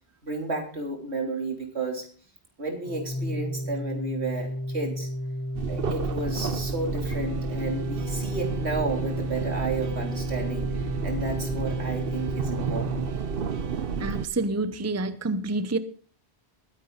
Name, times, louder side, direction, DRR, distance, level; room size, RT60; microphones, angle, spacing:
voice 1, 0.2-2.1 2.6-5.1 5.7-13.1, right 3 dB, 85° right, 3.7 m, -32 dB
Organ, 2.8-13.7, equal, 15° left, 1.1 m, -33 dB
sound 1, 5.5-14.3, right 6 dB, 60° right, 1.0 m, -31 dB
voice 2, 14.0-15.8, right 2 dB, 15° right, 0.7 m, -28 dB
21.0 x 10.0 x 4.0 m
omnidirectional pair, 1.1 m